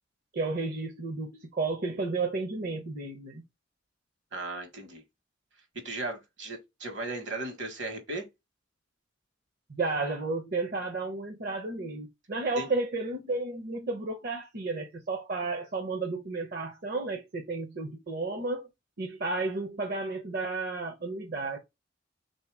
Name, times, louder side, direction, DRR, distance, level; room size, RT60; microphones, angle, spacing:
voice 1, 0.3-3.4 9.7-18.7 19.0-21.6, right 3 dB, 50° right, 0.7 m, -32 dB
voice 2, 4.3-5.0 5.8-8.2 12.6-12.7, right 2 dB, 70° right, 1.4 m, -36 dB
3.6 x 2.8 x 4.6 m
head